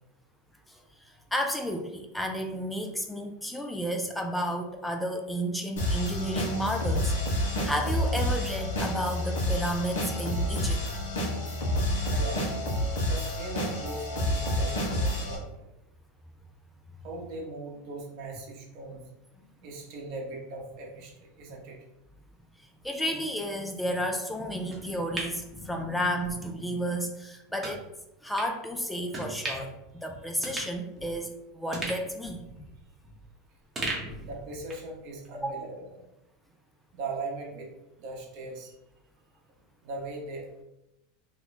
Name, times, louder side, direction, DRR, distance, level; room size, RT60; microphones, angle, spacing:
voice 1, 0.7-10.8 22.8-27.9 28.2-29.7 30.0-32.4 34.0-34.1 35.3-35.5, equal, 5° left, 4 dB, 0.3 m, -32 dB
sound 1, 5.8-15.4, equal, 85° left, 1.2 m, -29 dB
voice 2, 12.1-12.5 13.0-15.7 17.0-19.0 19.6-21.8 34.2-36.0 36.9-37.7 38.0-38.7 39.8-40.6, right 2 dB, 55° right, 0 dB, 0.9 m, -39 dB
sound 2, 24.7-26.3 26.7-26.8 27.6-27.8 28.4-28.5 29.1-29.8 30.1-30.2 30.4-31.3 31.7-33.3 33.7-34.9 35.2-35.3, right 2 dB, 20° right, 0.9 m, -37 dB
3.0 x 2.2 x 3.9 m, 0.90 s
supercardioid pair, 135°, 0 cm